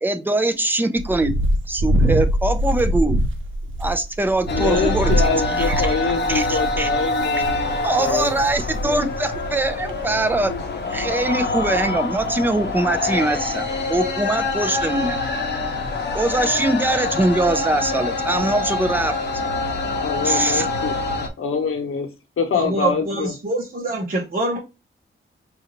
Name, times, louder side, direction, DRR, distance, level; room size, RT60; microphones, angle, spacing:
voice 1, 0.0-1.3 1.7-3.2 3.8-5.2 5.6-6.0 6.3-6.9 7.8-10.5 10.9-15.2 16.1-19.2 20.2-20.7, right 2 dB, 10° right, 0.4 m, -22 dB
sound 1, 1.0-8.2 8.5-9.0 9.3-9.4 9.9-10.0, right 1 dB, 70° right, 0.6 m, -23 dB
voice 2, 4.5-8.5 20.0-22.1 22.4-23.3, left 5 dB, 85° left, 0.9 m, -25 dB
sound 2, 4.5-21.3, left 3 dB, 55° left, 0.8 m, -25 dB
voice 3, 22.5-24.6, right 2 dB, 40° right, 0.9 m, -25 dB
5.3 x 2.5 x 2.9 m
wide cardioid pair, 175°, 21 cm